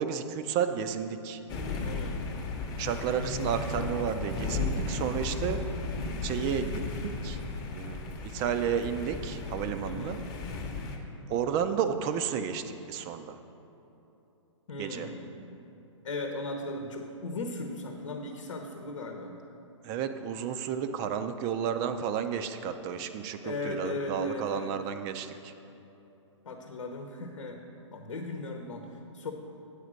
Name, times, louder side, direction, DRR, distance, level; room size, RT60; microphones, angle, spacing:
voice 1, 0.0-1.4 2.8-5.6 6.2-7.4 7.7-10.2 11.3-13.4 14.8-15.1 19.8-25.5, right 8 dB, 25° right, 9 dB, 0.4 m, -32 dB
sound 1, 1.5-11.0, left 3 dB, 25° left, 0.8 m, -35 dB
voice 2, 1.8-2.2 9.8-10.3 14.7-15.7 16.0-19.4 23.4-24.7 26.4-27.6 27.9-28.9 29.1-29.3, left 2 dB, 80° left, 3 dB, 0.9 m, -37 dB
8.1 x 4.9 x 6.3 m, 3.0 s
hypercardioid pair, 135°, 16 cm